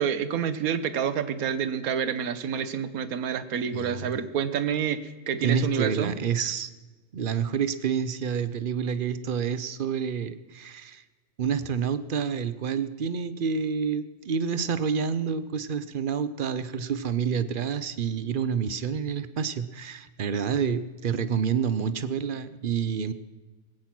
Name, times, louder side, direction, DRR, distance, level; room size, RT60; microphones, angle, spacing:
voice 1, 0.0-6.2, right 8 dB, 85° right, 13 dB, 1.3 m, -28 dB
voice 2, 3.7-4.2 5.4-6.7 7.1-11.0 11.4-23.1, right 7 dB, 50° right, 13 dB, 0.7 m, -28 dB
21.5 x 8.8 x 6.0 m, 1.3 s
omnidirectional pair, 1.5 m